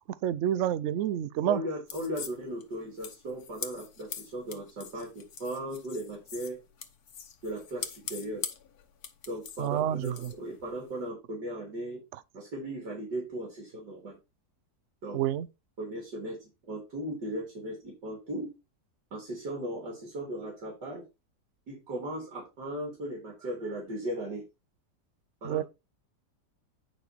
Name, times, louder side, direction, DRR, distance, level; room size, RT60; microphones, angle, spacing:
voice 1, 0.2-1.6 9.6-10.3 15.1-15.5 25.4-25.6, right 11 dB, 65° right, 0.7 m, -28 dB
voice 2, 1.4-6.6 7.4-8.4 9.3-12.0 12.3-14.2 15.0-15.2 15.8-18.5 19.1-21.0 21.7-24.4 25.4-25.6, right 1 dB, 90° right, 3.9 m, -37 dB
sound 1, 1.9-11.1, left 7 dB, 65° left, 1.5 m, -43 dB
9.2 x 5.3 x 4.5 m
omnidirectional pair, 1.8 m